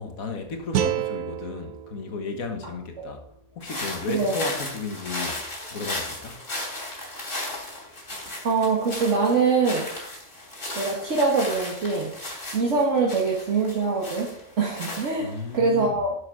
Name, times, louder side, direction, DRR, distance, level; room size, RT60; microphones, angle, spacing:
voice 1, 0.0-3.2 3.5-5.4 5.7-6.4 15.2-16.0, left 4 dB, 80° left, 1.8 m, -34 dB
sound 1, 0.7-3.8, right 9 dB, 85° right, 1.2 m, -31 dB
sound 2, 3.6-15.5, left 1 dB, 60° left, 3.5 m, -35 dB
voice 2, 4.1-4.4 8.4-9.9 10.8-12.1 12.5-14.3 14.6-16.1, right 4 dB, 60° right, 1.9 m, -23 dB
11.0 x 7.5 x 3.7 m
omnidirectional pair, 1.4 m